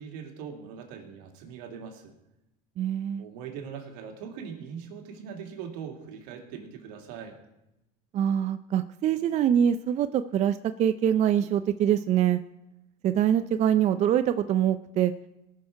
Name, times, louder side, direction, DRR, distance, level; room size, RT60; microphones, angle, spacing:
voice 1, 0.0-2.1 3.2-7.4, right 7 dB, 75° right, 3 dB, 2.3 m, -41 dB
voice 2, 2.8-3.3 8.1-12.4 13.0-15.1, right 10 dB, 35° right, 11 dB, 0.4 m, -24 dB
19.0 x 6.4 x 4.7 m, 0.90 s
supercardioid pair, 115°, 20 cm